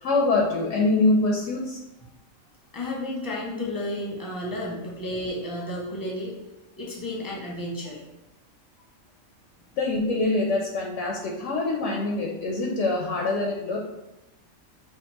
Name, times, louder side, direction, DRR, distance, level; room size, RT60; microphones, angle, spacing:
voice 1, 0.0-1.8 9.8-13.8, left 2 dB, 70° left, -1 dB, 0.9 m, -24 dB
voice 2, 2.7-6.4 6.8-8.0, left 1 dB, 20° left, -3 dB, 0.8 m, -32 dB
5.8 x 2.4 x 2.9 m, 0.94 s
omnidirectional pair, 1.4 m